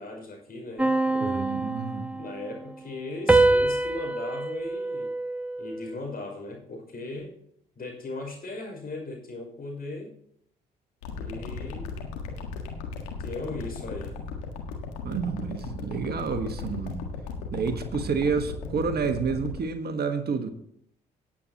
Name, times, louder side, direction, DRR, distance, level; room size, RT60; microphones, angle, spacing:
voice 1, 0.0-1.5 2.1-5.1 5.6-7.3 7.8-10.1 11.1-11.9 13.2-14.1, left 2 dB, 45° left, 0 dB, 5.7 m, -38 dB
sound 1, 0.8-2.6 3.3-5.9, right 2 dB, 5° right, 0.8 m, -25 dB
voice 2, 1.2-2.1 15.0-17.0 17.5-20.5, right 5 dB, 50° right, 8 dB, 1.4 m, -29 dB
sound 2, 11.0-19.6, left 5 dB, 85° left, 1.6 m, -36 dB
18.5 x 8.6 x 2.9 m, 0.71 s
hypercardioid pair, 50°, 21 cm